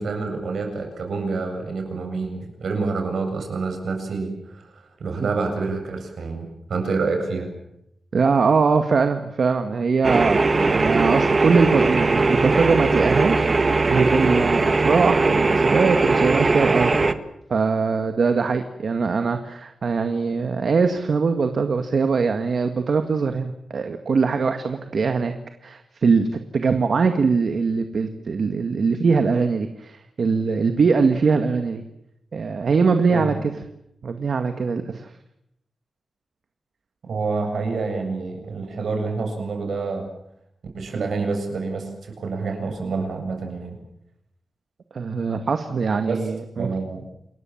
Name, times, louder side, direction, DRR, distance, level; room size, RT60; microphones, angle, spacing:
voice 1, 0.0-7.5 33.1-33.5 37.1-40.1 40.7-43.8 46.0-46.2 46.6-47.1, right 4 dB, 75° right, 4 dB, 7.8 m, -27 dB
voice 2, 8.1-13.5 13.9-17.1 17.5-25.3 25.6-31.8 32.3-33.5 34.0-35.1 44.9-46.7, right 5 dB, 60° right, 7 dB, 2.0 m, -22 dB
sound 1, 10.0-17.1, right 3 dB, 35° right, 1.7 m, -20 dB
29.0 x 22.0 x 7.4 m, 0.79 s
wide cardioid pair, 120°, 0 cm